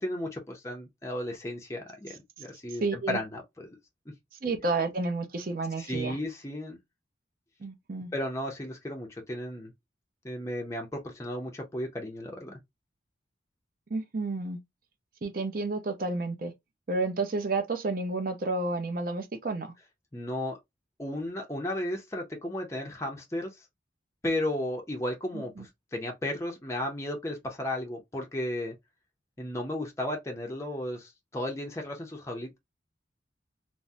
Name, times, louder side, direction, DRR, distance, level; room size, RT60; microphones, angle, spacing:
voice 1, 0.0-3.7 4.1-4.2 5.8-6.8 8.1-9.7 10.2-12.6 20.1-20.6 21.0-23.7 24.2-28.8 29.4-32.6, left 1 dB, 15° left, 0.5 m, -34 dB
voice 2, 2.8-3.2 4.4-6.2 7.6-8.1 13.9-14.6 15.2-16.5 16.9-19.7 25.3-25.6, right 3 dB, 45° right, 0.5 m, -31 dB
3.4 x 2.0 x 2.6 m
head